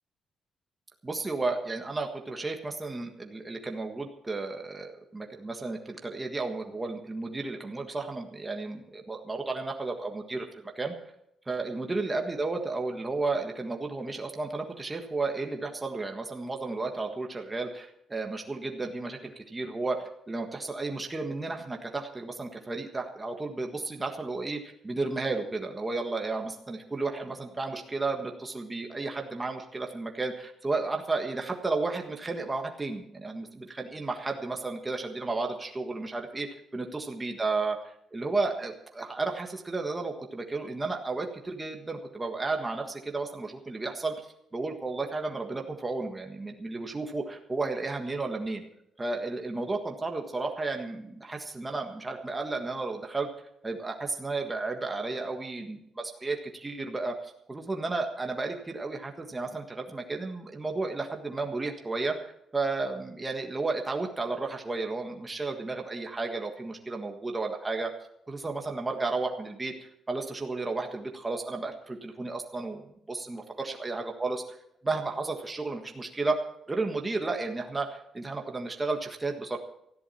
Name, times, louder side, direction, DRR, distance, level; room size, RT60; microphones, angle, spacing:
voice 1, 1.0-10.9 11.5-20.0 20.3-36.5 36.7-44.1 44.5-48.6 49.0-53.3 53.6-62.1 62.5-67.9 68.3-74.6 74.8-76.4 76.7-79.6, right 3 dB, 15° right, 3 dB, 1.5 m, -33 dB
19.0 x 14.0 x 4.3 m, 0.75 s
cardioid pair, 175°, 0 cm